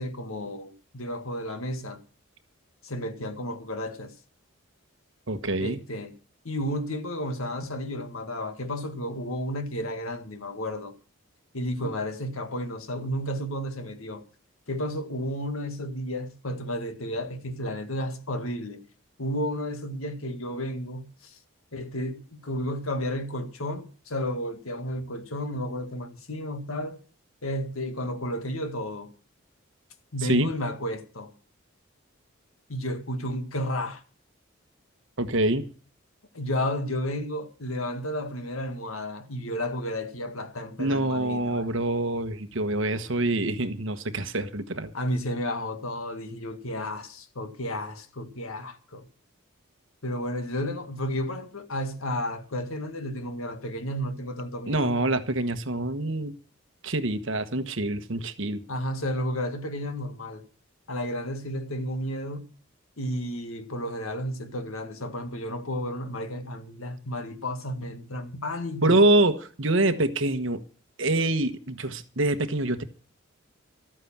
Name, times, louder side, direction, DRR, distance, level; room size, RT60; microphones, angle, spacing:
voice 1, 0.0-2.0 2.8-4.1 5.6-6.1 6.4-10.9 11.5-14.2 14.7-18.8 19.2-21.4 21.7-27.0 27.4-29.1 30.1-31.3 32.7-34.0 36.3-41.7 44.9-49.1 50.0-55.0 58.7-60.4 60.9-62.5 63.0-69.0, equal, 85° left, 1.8 m, -32 dB
voice 2, 5.3-5.8 11.8-11.9 30.2-30.5 35.2-35.6 40.8-44.9 54.7-56.4 56.8-58.6 68.8-70.6 71.0-72.8, right 2 dB, 65° right, 1.3 m, -25 dB
13.5 x 9.1 x 7.2 m
head